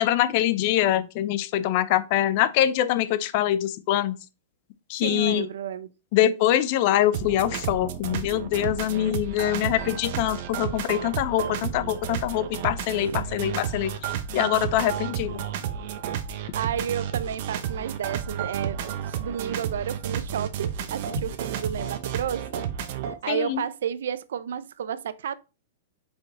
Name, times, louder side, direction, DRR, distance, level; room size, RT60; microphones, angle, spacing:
voice 1, 0.0-4.2 4.9-5.5 6.1-13.9 14.3-15.4 23.3-23.6, left 12 dB, 45° left, 0.6 m, -24 dB
voice 2, 5.0-5.9 12.9-13.3 16.5-22.6 23.1-25.4, right 9 dB, 80° right, 0.5 m, -32 dB
sound 1, 7.1-23.1, right 9 dB, 50° right, 0.9 m, -32 dB
5.1 x 4.8 x 4.1 m
hypercardioid pair, 150°, 0 cm